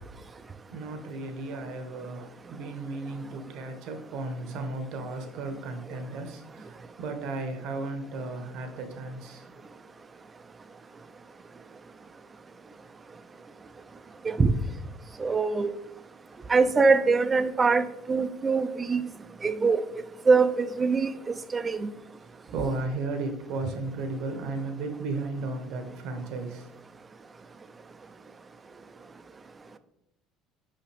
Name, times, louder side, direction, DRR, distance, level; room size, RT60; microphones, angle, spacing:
voice 1, 0.7-9.4 22.5-26.7 28.7-29.0, right 3 dB, 65° right, 7 dB, 1.0 m, -35 dB
voice 2, 15.2-15.7 16.5-19.1 19.4-19.8 20.3-21.9, right 4 dB, 20° right, 11 dB, 0.4 m, -23 dB
5.6 x 5.4 x 3.4 m, 0.84 s
cardioid pair, 140°, 0 cm